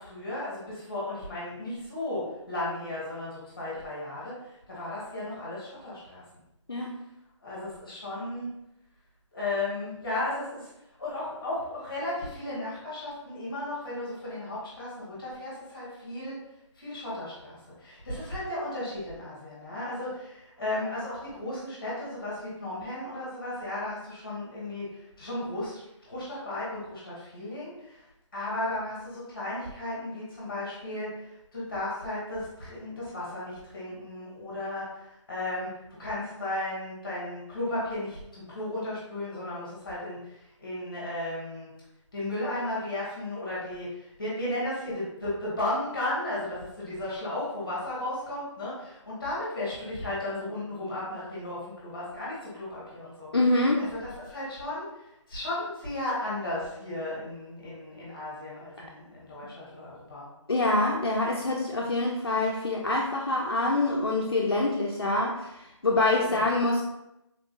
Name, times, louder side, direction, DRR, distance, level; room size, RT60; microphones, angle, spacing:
voice 1, 0.0-6.2 7.4-8.5 9.3-10.7 11.0-16.3 16.7-28.1 28.3-41.7 42.1-53.3 53.8-60.3 66.2-66.5, left 1 dB, 10° left, -7 dB, 1.4 m, -35 dB
voice 2, 53.3-53.8 60.5-65.4 65.8-66.8, left 2 dB, 50° left, -2 dB, 0.5 m, -25 dB
3.6 x 3.5 x 2.8 m, 0.87 s
figure-of-eight pair, 175°, 16 cm